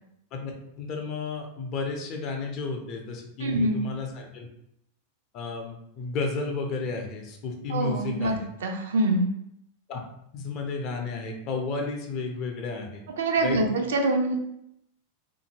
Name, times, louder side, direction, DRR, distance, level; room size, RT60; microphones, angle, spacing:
voice 1, 0.8-4.5 5.3-8.4 9.9-10.0 10.3-13.0 13.4-13.6, left 4 dB, 40° left, 3 dB, 0.5 m, -32 dB
voice 2, 3.4-3.8 7.7-9.3 13.2-14.4, right 2 dB, 60° right, 3 dB, 0.4 m, -25 dB
2.7 x 2.5 x 2.7 m, 0.77 s
figure-of-eight pair, 90°, 0 cm